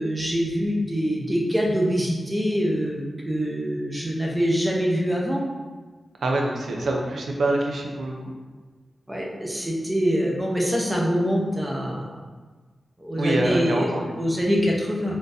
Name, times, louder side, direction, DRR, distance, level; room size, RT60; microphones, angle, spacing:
voice 1, 0.0-5.4 9.1-12.1 13.0-15.2, equal, 15° right, -2 dB, 0.7 m, -24 dB
voice 2, 6.2-8.1 13.2-14.1, right 2 dB, 80° right, 0 dB, 0.5 m, -25 dB
3.7 x 2.5 x 2.6 m, 1.4 s
cardioid pair, 55°, 0 cm